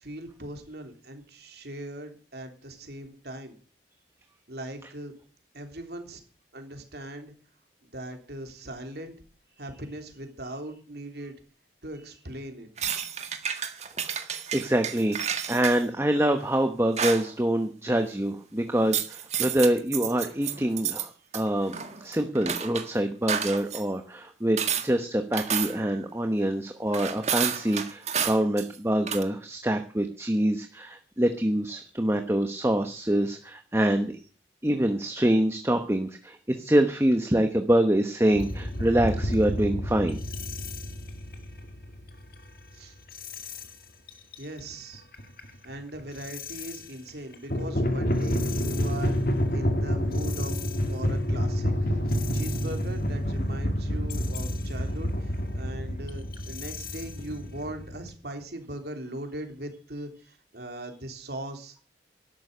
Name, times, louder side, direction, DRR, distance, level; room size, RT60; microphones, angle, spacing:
voice 1, 0.0-3.6 4.5-5.1 5.5-6.2 6.5-7.3 7.8-9.1 9.6-11.3 11.8-12.9 42.7-43.0 44.4-45.0 45.6-49.2 49.5-50.5 50.9-61.8, right 1 dB, 60° right, 5 dB, 3.4 m, -40 dB
sound 1, 12.8-15.8 17.0-17.3 18.9-21.1 21.3-22.9 23.3-23.8 24.6-24.9 25.3-25.9 26.9-28.8 29.1-29.2, right 8 dB, 35° right, 1.7 m, -30 dB
voice 2, 14.5-21.8 22.0-34.1 34.6-40.2, right 1 dB, 15° right, 6 dB, 1.1 m, -25 dB
sound 2, 38.3-42.6 43.1-43.7 44.1-44.4 44.9-46.8 47.3-58.1, equal, 50° left, 2.1 m, -29 dB
13.5 x 12.0 x 6.7 m, 0.40 s
head